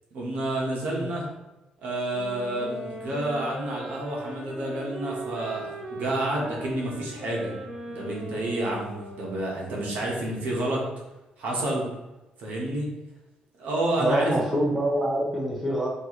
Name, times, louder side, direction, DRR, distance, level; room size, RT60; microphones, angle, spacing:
voice 1, 0.1-1.3 1.8-7.5 7.9-10.8 11.4-11.9 12.4-12.9 13.6-14.3, right 1 dB, 70° right, -3 dB, 1.2 m, -29 dB
sound 1, 2.1-10.1, right 1 dB, 30° right, 1.1 m, -39 dB
voice 2, 14.0-15.9, right 1 dB, 5° right, -4 dB, 0.8 m, -25 dB
4.4 x 2.7 x 3.1 m, 1.0 s
cardioid pair, 145°, 3 cm